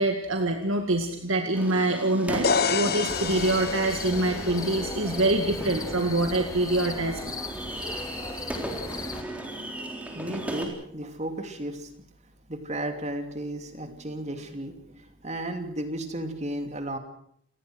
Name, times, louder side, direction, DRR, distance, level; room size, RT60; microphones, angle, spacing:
voice 1, 0.0-7.4, right 2 dB, 75° right, 4 dB, 2.1 m, -25 dB
sound 1, 1.5-10.6, right 1 dB, 5° right, 3.7 m, -36 dB
sound 2, 2.4-6.3, left 5 dB, 50° left, 1.1 m, -30 dB
sound 3, 3.1-9.2, left 3 dB, 15° left, 1.6 m, -37 dB
voice 2, 10.1-11.9 12.5-17.0, right 1 dB, 35° right, 6 dB, 2.8 m, -34 dB
28.0 x 19.5 x 6.3 m, 0.68 s
head